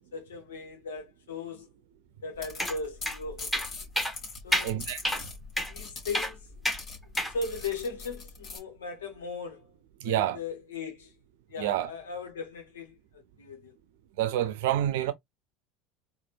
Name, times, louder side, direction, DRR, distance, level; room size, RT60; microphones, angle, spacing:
voice 1, 0.1-1.7 2.2-3.6 4.4-4.9 5.7-6.5 7.3-9.7 10.0-11.1 11.5-13.7, left 4 dB, 75° left, 1.3 m, -38 dB
sound 1, 2.3-8.6, left 4 dB, 40° left, 2.5 m, -42 dB
sound 2, 2.6-2.8 3.1-3.2 3.5-3.7 4.0-4.1 4.5-4.7 5.0-5.2 5.6-5.7 6.1-6.3 6.6-6.8 7.2-7.3, equal, 5° left, 1.4 m, -28 dB
voice 2, 4.6-5.3 10.0-10.4 11.6-11.9 14.2-15.1, right 12 dB, 70° right, 0.6 m, -28 dB
4.2 x 2.6 x 2.5 m
figure-of-eight pair, 70°, 0 cm